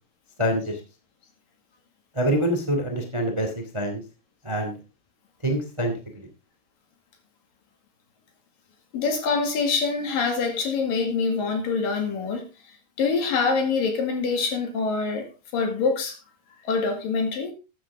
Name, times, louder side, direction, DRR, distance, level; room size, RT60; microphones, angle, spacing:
voice 1, 0.4-0.8 2.1-4.0 4.4-4.8 5.4-6.3, right 1 dB, 10° right, 1.7 m, -26 dB
voice 2, 8.9-16.2 16.6-17.5, left 4 dB, 60° left, 3.7 m, -25 dB
14.0 x 10.0 x 3.7 m
omnidirectional pair, 4.6 m